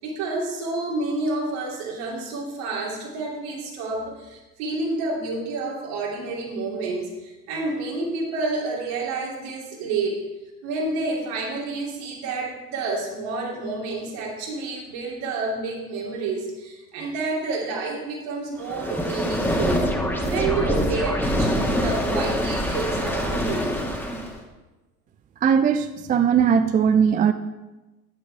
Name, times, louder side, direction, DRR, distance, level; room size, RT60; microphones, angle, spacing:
voice 1, 0.0-10.3 10.6-19.9 20.2-23.8, right 3 dB, 60° right, -2 dB, 3.0 m, -29 dB
sound 1, 18.6-24.4, equal, 5° left, 1.8 m, -25 dB
voice 2, 25.4-27.3, right 7 dB, 20° right, 10 dB, 0.4 m, -19 dB
10.5 x 10.0 x 3.5 m, 1.1 s
figure-of-eight pair, 55°, 47 cm